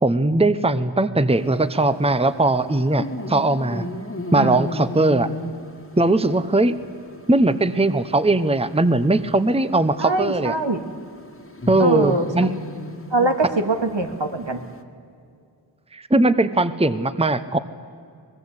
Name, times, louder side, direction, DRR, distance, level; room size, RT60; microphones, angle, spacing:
voice 1, 0.0-3.8 4.3-5.3 6.0-6.8 7.3-10.6 11.7-12.5 15.9-17.6, right 2 dB, 15° right, 13 dB, 0.9 m, -19 dB
sound 1, 1.3-14.8, left 1 dB, 30° left, 1.8 m, -36 dB
voice 2, 10.0-10.8 11.8-12.3 13.1-14.6, right 2 dB, 75° right, 5 dB, 2.0 m, -22 dB
24.0 x 20.5 x 8.2 m, 2.3 s
wide cardioid pair, 45°, 45 cm